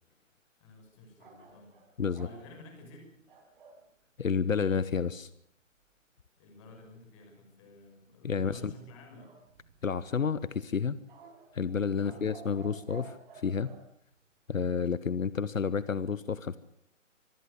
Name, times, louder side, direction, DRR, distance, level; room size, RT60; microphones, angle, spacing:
voice 1, 0.6-1.7 2.2-3.1 6.4-9.4 11.9-12.2, left 1 dB, 25° left, 4 dB, 6.2 m, -52 dB
sound 1, 1.2-3.8 9.2-10.1 11.1-13.8, right 4 dB, 40° right, 6.2 m, -52 dB
voice 2, 4.2-5.3 8.2-8.7 9.8-11.0 11.5-13.7 14.5-16.6, left 6 dB, 80° left, 17 dB, 1.1 m, -30 dB
25.5 x 15.0 x 8.3 m, 0.68 s
figure-of-eight pair, 155°, 39 cm